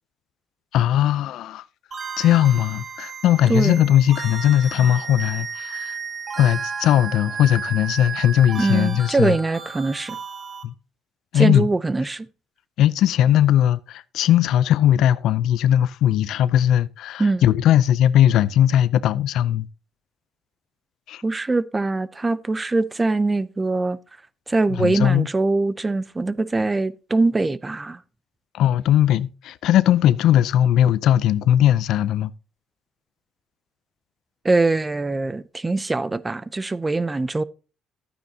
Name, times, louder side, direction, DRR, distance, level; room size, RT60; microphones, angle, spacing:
voice 1, 0.7-1.6 2.2-6.0 6.4-9.4 10.6-10.7 11.3-11.7 12.8-19.7 21.1-21.2 24.8-25.3 28.5-32.3, left 11 dB, 75° left, 0.4 m, -19 dB
sound 1, 1.9-10.6, right 6 dB, 35° right, 1.9 m, -33 dB
voice 2, 3.5-3.8 8.6-10.2 11.3-12.3 17.2-17.5 21.2-24.0 24.5-28.0 34.4-37.4, right 3 dB, 20° right, 0.5 m, -22 dB
12.0 x 9.2 x 2.8 m
cardioid pair, 100°, 0 cm